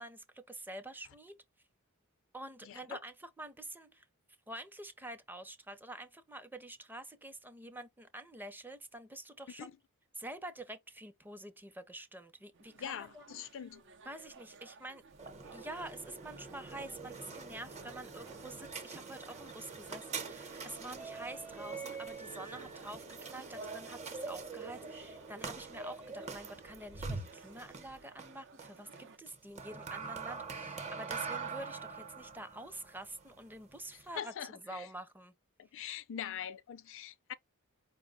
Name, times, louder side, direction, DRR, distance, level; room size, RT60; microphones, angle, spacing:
voice 1, 0.0-1.4 2.3-4.1 4.5-9.7 10.1-13.4 14.0-15.0 15.5-23.0 23.3-34.3 34.7-35.3, right 1 dB, 10° right, 0.6 m, -47 dB
voice 2, 2.6-3.0 9.6-9.7 12.7-13.8 34.2-34.9 35.6-37.3, left 9 dB, 60° left, 0.4 m, -43 dB
sound 1, 12.5-29.2, right 5 dB, 55° right, 0.7 m, -58 dB
tcr soudscape hcfr jules-yanis, 15.1-34.2, right 4 dB, 30° right, 0.9 m, -44 dB
5.1 x 2.2 x 3.8 m
head